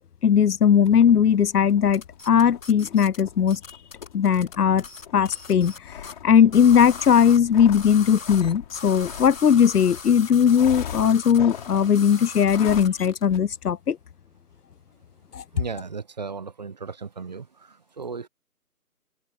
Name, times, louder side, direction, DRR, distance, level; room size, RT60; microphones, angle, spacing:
voice 1, 0.2-3.6 4.1-4.8 5.1-5.7 6.2-14.0 15.3-15.4, left 8 dB, 75° left, 0.7 m, -19 dB
sound 1, 0.8-10.1 10.5-12.0 12.4-13.0 13.3-13.4, left 9 dB, 30° left, 6.2 m, -41 dB
sound 2, 1.9-3.2 3.5-5.8 6.0-6.1 6.5-13.3, left 5 dB, 55° left, 3.7 m, -40 dB
voice 2, 15.5-18.3, right 5 dB, 30° right, 1.1 m, -36 dB
figure-of-eight pair, 160°, 46 cm